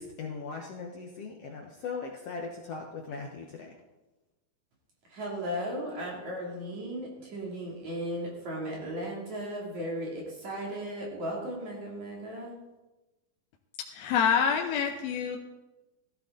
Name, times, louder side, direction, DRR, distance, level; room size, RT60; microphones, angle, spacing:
voice 1, 0.0-3.8, left 4 dB, 65° left, 1 dB, 1.5 m, -39 dB
voice 2, 5.1-12.5, equal, 50° right, -3 dB, 3.9 m, -36 dB
voice 3, 13.9-15.4, left 7 dB, 85° left, 2 dB, 2.6 m, -26 dB
17.0 x 13.0 x 3.9 m, 1.1 s
omnidirectional pair, 4.2 m